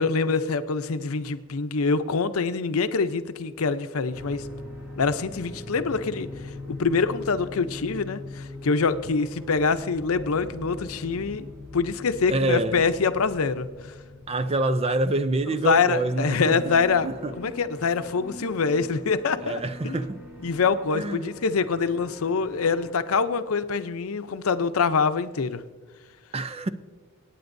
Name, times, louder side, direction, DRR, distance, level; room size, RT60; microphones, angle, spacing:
voice 1, 0.0-4.4 5.0-6.3 6.7-11.5 11.7-13.7 15.6-17.1 17.4-20.0 20.4-25.6, left 5 dB, 90° left, 0.6 m, -25 dB
sound 1, 4.1-22.9, left 2 dB, 10° right, 2.2 m, -42 dB
voice 2, 12.3-12.8 14.3-16.6 17.0-17.3 19.4-20.2 20.9-21.3 26.3-26.7, right 2 dB, 30° right, 0.4 m, -26 dB
26.5 x 9.3 x 2.6 m
head